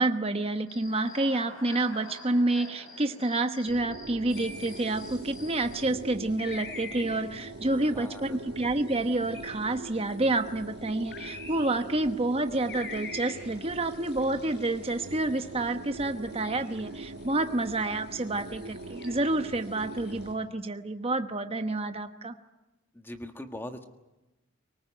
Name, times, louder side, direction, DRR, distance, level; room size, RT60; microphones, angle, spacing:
voice 1, 0.0-22.3, right 2 dB, 25° right, 7 dB, 1.1 m, -29 dB
Human voice / Cricket, 0.7-5.8, left 2 dB, 70° left, 5.5 m, -47 dB
sound 1, 3.6-20.4, right 2 dB, 65° right, 1.3 m, -42 dB
sound 2, 4.3-20.3, left 4 dB, 50° left, 7.0 m, -48 dB
voice 2, 7.7-8.4 22.9-23.8, left 1 dB, 10° left, 6 dB, 1.6 m, -41 dB
24.0 x 19.5 x 9.1 m, 1.1 s
head